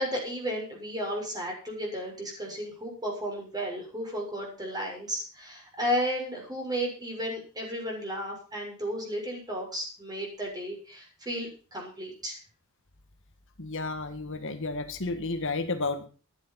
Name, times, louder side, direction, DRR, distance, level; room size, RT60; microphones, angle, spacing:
voice 1, 0.0-12.4, equal, 20° right, 0 dB, 6.7 m, -33 dB
voice 2, 13.6-16.1, left 3 dB, 60° left, 7 dB, 1.7 m, -32 dB
14.0 x 10.5 x 5.8 m, 0.37 s
head